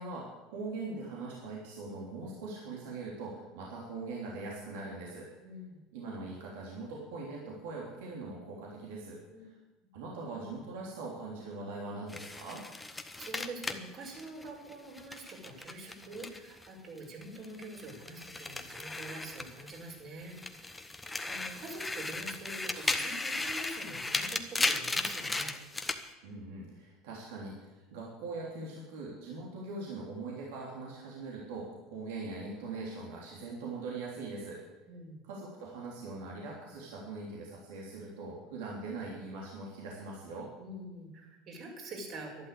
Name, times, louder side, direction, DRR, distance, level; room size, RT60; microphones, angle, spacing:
voice 1, 0.0-5.3 5.9-9.2 9.9-12.6 26.2-34.6 35.2-40.5, right 3 dB, 70° right, -3 dB, 3.3 m, -41 dB
voice 2, 5.4-5.8 9.3-9.4 9.8-9.9 13.1-20.7 21.3-25.5 34.9-35.2 40.6-42.5, right 2 dB, 50° right, -1 dB, 6.1 m, -45 dB
sound 1, 12.1-16.7 17.0-19.9 20.3-26.0, left 2 dB, 15° left, 1.4 m, -36 dB
12.0 x 11.5 x 8.5 m, 1.1 s
hypercardioid pair, 80°, 0 cm